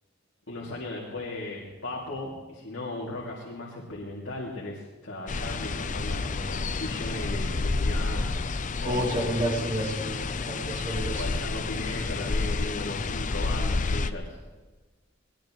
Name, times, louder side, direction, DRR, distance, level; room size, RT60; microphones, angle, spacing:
voice 1, 0.5-8.3 8.8-9.5 11.2-14.4, left 2 dB, 70° left, -4 dB, 2.5 m, -36 dB
sound 1, 5.3-14.1, left 3 dB, 40° left, 0.6 m, -30 dB
voice 2, 8.8-11.4, right 1 dB, 40° right, -3 dB, 3.1 m, -30 dB
20.5 x 20.0 x 3.1 m, 1.3 s
head